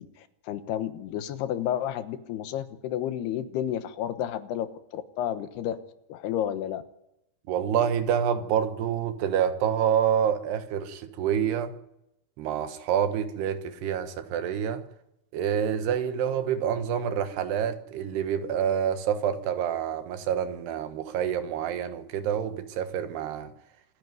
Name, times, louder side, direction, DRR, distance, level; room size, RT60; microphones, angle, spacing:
voice 1, 0.0-5.8 6.1-6.8, left 11 dB, 85° left, 3.2 m, -31 dB
voice 2, 7.5-11.7 12.4-14.8 15.3-23.5, right 8 dB, 90° right, 3.4 m, -27 dB
26.5 x 10.5 x 9.5 m
omnidirectional pair, 4.6 m